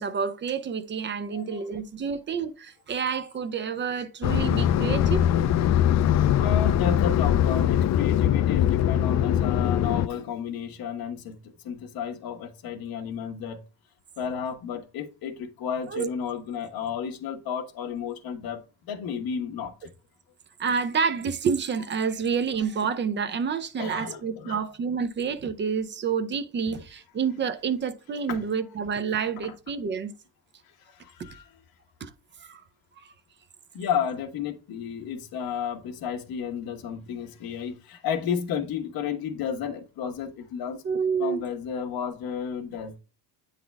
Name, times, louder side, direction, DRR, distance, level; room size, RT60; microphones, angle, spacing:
voice 1, 0.0-5.2 15.9-16.1 20.6-30.1 32.0-32.1 32.4-32.6 40.8-41.4, right 6 dB, 30° right, 0.6 m, -28 dB
sound 1, 4.2-10.1, left 11 dB, 45° left, 0.4 m, -22 dB
voice 2, 6.4-11.4 11.6-13.6 14.2-19.7 23.8-24.6 28.3-28.4 30.9-31.5 33.7-40.8 41.2-43.0, left 7 dB, 65° left, 1.4 m, -32 dB
9.1 x 4.1 x 3.4 m
cardioid pair, 155°, 38 cm